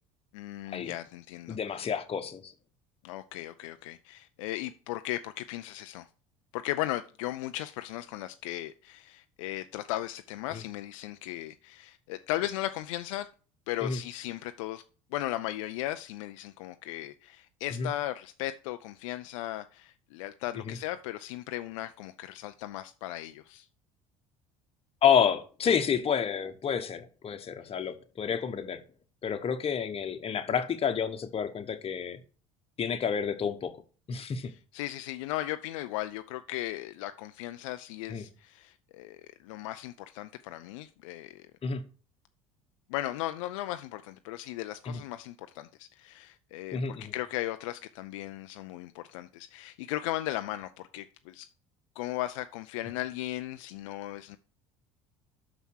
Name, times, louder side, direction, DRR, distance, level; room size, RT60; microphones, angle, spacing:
voice 1, 0.3-1.9 3.0-6.1 6.5-13.3 13.7-14.8 15.1-23.7 34.4-41.5 42.9-51.5 52.0-54.4, left 15 dB, 75° left, 0.5 m, -37 dB
voice 2, 1.5-2.5 10.5-10.6 13.8-14.0 17.7-17.9 20.7-20.8 25.0-28.8 29.2-32.2 32.8-33.7 34.1-34.5 38.1-38.2 41.6-41.8 44.9-45.0 46.7-47.1, left 7 dB, 35° left, 1.2 m, -29 dB
6.0 x 5.5 x 6.3 m
hypercardioid pair, 70°, 17 cm